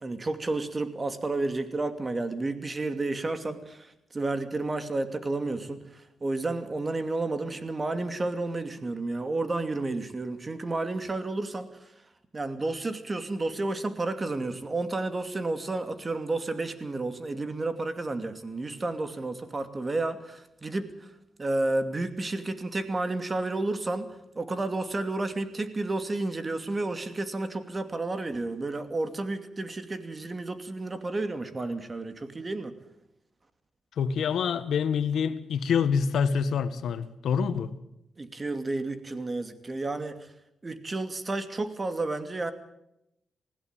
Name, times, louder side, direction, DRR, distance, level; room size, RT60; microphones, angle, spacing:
voice 1, 0.0-5.8 6.2-11.7 12.3-20.9 21.4-24.1 24.4-32.7 38.2-40.2 40.6-42.5, right 2 dB, 30° right, 2.6 m, -31 dB
voice 2, 34.0-37.7, left 6 dB, 80° left, 1.5 m, -26 dB
20.0 x 16.0 x 9.2 m
cardioid pair, 75°, 0 cm